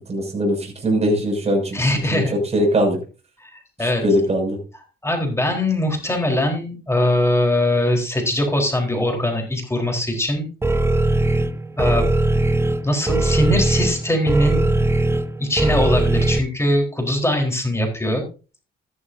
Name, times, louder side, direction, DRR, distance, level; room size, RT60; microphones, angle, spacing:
voice 1, 0.1-1.8 2.1-2.2 2.5-3.0 3.8-4.6, equal, 30° right, 1 dB, 6.3 m, -20 dB
voice 2, 1.7-2.4 3.4-4.0 5.0-10.5 11.8-12.1 12.8-14.8 15.4-18.2, left 1 dB, 15° left, 2 dB, 4.0 m, -21 dB
sound 1, 10.6-16.4, right 2 dB, 10° right, 0.8 m, -20 dB
14.0 x 12.0 x 2.7 m, 0.33 s
cardioid pair, 90°, 20 cm